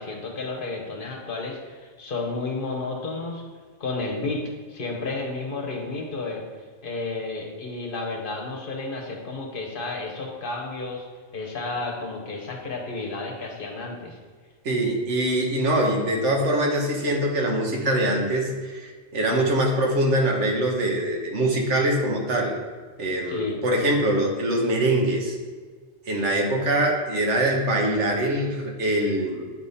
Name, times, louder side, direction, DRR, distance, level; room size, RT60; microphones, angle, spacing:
voice 1, 0.0-3.4 3.8-6.4 6.8-11.1 11.3-14.2 23.3-23.6, left 3 dB, 50° left, 0 dB, 1.0 m, -32 dB
voice 2, 14.6-22.6 23.0-25.4 26.1-29.5, right 1 dB, 80° right, 0 dB, 1.4 m, -23 dB
8.7 x 3.6 x 4.1 m, 1.5 s
omnidirectional pair, 1.2 m